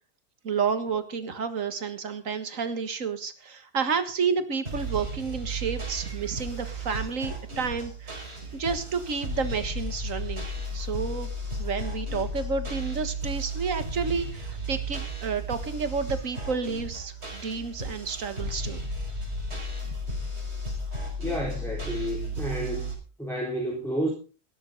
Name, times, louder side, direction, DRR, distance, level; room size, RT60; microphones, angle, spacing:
voice 1, 0.4-8.3 8.5-10.5 10.7-11.3 11.6-18.8, right 5 dB, 60° right, 10 dB, 2.0 m, -30 dB
sound 1, 4.6-22.9, right 1 dB, 45° right, 4.7 m, -34 dB
voice 2, 21.2-22.9 23.2-24.1, equal, ahead, -3 dB, 4.0 m, -30 dB
16.5 x 12.5 x 4.0 m, 0.35 s
omnidirectional pair, 1.6 m